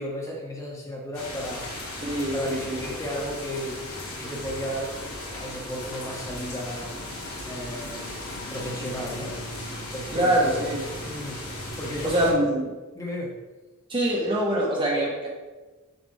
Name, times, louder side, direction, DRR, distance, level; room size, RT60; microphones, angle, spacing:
voice 1, 0.0-1.7 2.3-3.8 4.2-5.0 5.3-6.9 7.4-8.2 8.5-9.3 9.9-10.6 11.0-12.6 12.9-13.4, equal, 15° left, -2 dB, 1.2 m, -34 dB
sound 1, 1.1-12.3, left 1 dB, 80° left, 1.9 m, -36 dB
voice 2, 2.0-2.8 10.1-10.8 12.0-12.7 13.9-15.3, right 1 dB, 25° right, -5 dB, 1.0 m, -24 dB
6.3 x 5.8 x 3.3 m, 1.2 s
head